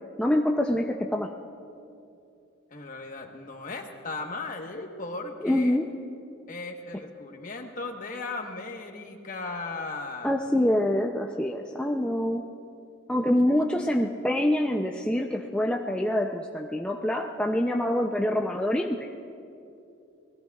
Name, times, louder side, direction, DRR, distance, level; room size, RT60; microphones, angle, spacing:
voice 1, 0.2-1.3 5.4-5.9 10.2-12.5 13.1-19.1, left 1 dB, 5° left, 1 dB, 0.4 m, -25 dB
voice 2, 2.7-5.8 6.5-10.3 13.5-13.8, left 3 dB, 40° left, 4 dB, 1.2 m, -37 dB
29.0 x 20.0 x 2.4 m, 2.7 s
head